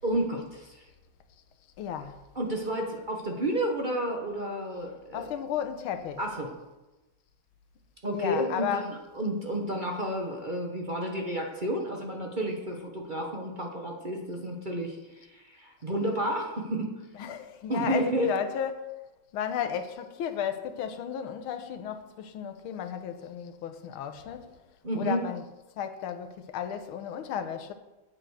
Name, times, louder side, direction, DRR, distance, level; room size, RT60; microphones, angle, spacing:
voice 1, 0.0-0.8 2.3-5.3 6.2-6.5 8.0-16.9 17.7-18.3 24.8-25.2, right 1 dB, 30° right, 1.1 m, -31 dB
voice 2, 1.8-2.2 5.1-6.2 8.1-8.9 17.2-18.8 19.3-24.6 24.9-25.4 25.8-27.7, left 8 dB, 90° left, 1.7 m, -34 dB
9.0 x 7.7 x 6.3 m
omnidirectional pair, 2.2 m